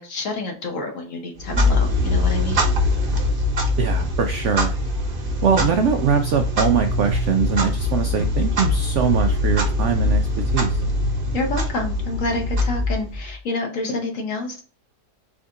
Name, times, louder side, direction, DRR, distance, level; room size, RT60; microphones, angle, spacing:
voice 1, 0.0-2.6 5.8-5.9 11.3-14.6, left 2 dB, 55° left, 2 dB, 1.3 m, -28 dB
Clock, 1.4-13.3, left 2 dB, 40° right, 0.9 m, -22 dB
voice 2, 3.8-4.7 5.4-10.8, right 7 dB, 80° right, 6 dB, 0.6 m, -22 dB
4.7 x 2.7 x 3.5 m, 0.40 s
omnidirectional pair, 1.8 m